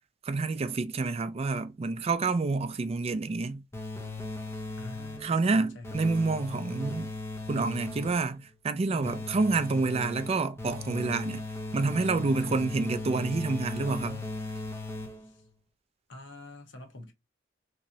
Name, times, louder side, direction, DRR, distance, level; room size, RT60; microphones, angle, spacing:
voice 1, 0.2-3.6 5.2-7.1 7.5-11.4 11.7-14.2, right 3 dB, 35° right, 0.4 m, -28 dB
sound 1, 3.7-5.4 5.8-8.3 9.0-15.4, left 2 dB, 15° left, 0.8 m, -38 dB
voice 2, 4.8-6.0 8.9-9.2 12.4-12.8 15.2-15.4 16.1-17.1, left 1 dB, 70° left, 1.0 m, -45 dB
3.5 x 3.0 x 2.7 m
head